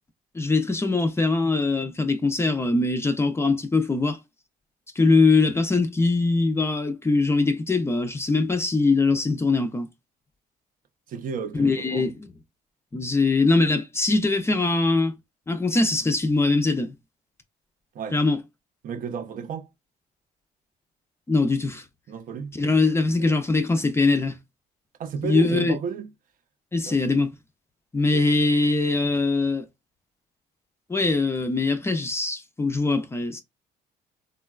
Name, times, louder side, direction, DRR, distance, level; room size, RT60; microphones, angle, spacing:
voice 1, 0.3-4.2 5.0-9.9 11.5-12.3 12.9-15.1 15.5-16.9 18.1-18.4 21.3-21.8 22.6-24.4 25.2-25.8 26.7-27.3 27.9-29.6 30.9-33.4, left 3 dB, 15° left, 0.4 m, -22 dB
voice 2, 11.1-12.1 17.9-18.2 18.8-19.7 22.1-23.4 25.0-26.1 26.8-27.1 28.0-28.2, right 6 dB, 55° right, 0.5 m, -33 dB
3.7 x 2.2 x 2.3 m
cardioid pair, 110°, 17 cm